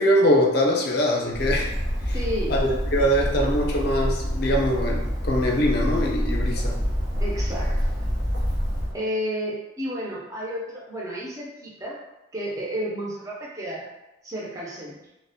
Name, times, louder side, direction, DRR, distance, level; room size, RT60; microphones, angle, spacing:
voice 1, 0.0-1.7 2.0-2.1 2.5-6.8, equal, 50° left, -1 dB, 0.4 m, -22 dB
Bird, 1.3-8.9, equal, 65° right, 0.8 m, -26 dB
voice 2, 2.1-2.6 3.0-3.1 7.2-7.8 8.9-12.0 12.3-13.8 14.2-15.0, equal, 15° right, -5 dB, 0.4 m, -31 dB
2.4 x 2.0 x 2.6 m, 0.97 s
head